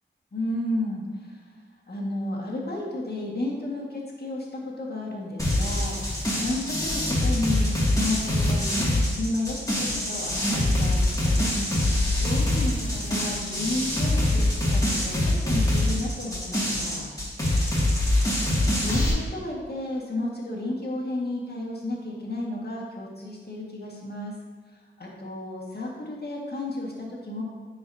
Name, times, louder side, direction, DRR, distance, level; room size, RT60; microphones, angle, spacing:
voice 1, 0.3-1.4 1.9-17.1 18.7-24.3 24.7-27.4, left 2 dB, 50° left, -2 dB, 1.7 m, -32 dB
sound 1, 5.4-19.1, left 1 dB, 15° left, 2.2 m, -24 dB
9.7 x 4.9 x 2.7 m, 1.4 s
cardioid pair, 50°, 21 cm